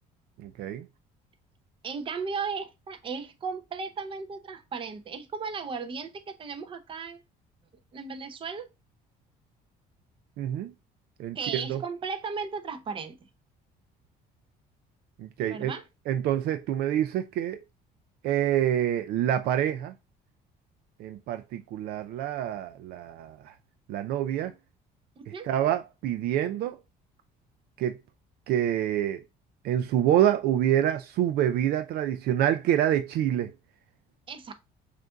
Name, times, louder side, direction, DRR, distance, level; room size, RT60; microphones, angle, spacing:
voice 1, 0.4-0.9 10.4-10.7 11.2-11.8 15.2-15.7 16.1-17.6 18.2-19.9 21.0-23.5 23.9-24.5 25.3-26.8 27.8-28.0 28.5-29.2 29.6-33.5, right 11 dB, 70° right, 0.4 m, -27 dB
voice 2, 1.8-7.2 7.9-8.7 11.3-13.2 15.4-15.8 25.2-25.5 34.3-34.5, right 5 dB, 30° right, 0.7 m, -35 dB
6.4 x 2.6 x 2.3 m
cardioid pair, 135°, 17 cm